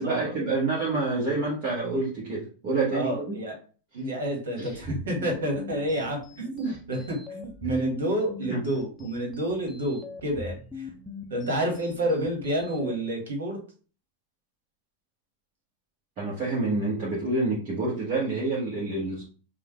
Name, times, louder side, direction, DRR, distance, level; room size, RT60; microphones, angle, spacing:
voice 1, 0.0-3.3 4.6-5.0 6.6-6.7 8.5-8.6 16.2-19.2, right 3 dB, 40° right, -6 dB, 1.5 m, -28 dB
voice 2, 2.9-3.5 3.9-10.9 11.3-13.6, right 1 dB, 65° right, 1 dB, 1.7 m, -29 dB
sound 1, 4.7-13.0, left 4 dB, 5° left, 0.7 m, -43 dB
5.5 x 2.5 x 3.3 m, 0.39 s
figure-of-eight pair, 90°, 0 cm